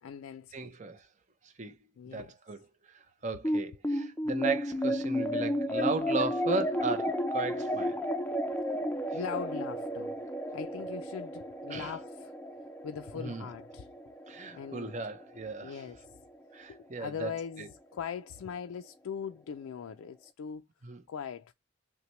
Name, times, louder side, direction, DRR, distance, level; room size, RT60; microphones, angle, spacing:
voice 1, 0.0-0.8 2.0-2.3 9.1-10.2 10.5-12.3 12.8-13.9 14.5-14.9 15.6-16.2 16.7-20.7 21.1-21.5, left 7 dB, 85° left, 0.4 m, -40 dB
voice 2, 0.5-1.1 1.4-1.8 2.1-2.6 2.9-8.0 11.7-11.9 13.2-13.4 14.3-15.8 16.5-17.3 17.6-17.7 20.8-21.0, right 3 dB, 35° right, 0.6 m, -36 dB
sound 1, 3.4-16.1, equal, 10° left, 0.4 m, -33 dB
5.7 x 2.2 x 3.0 m
head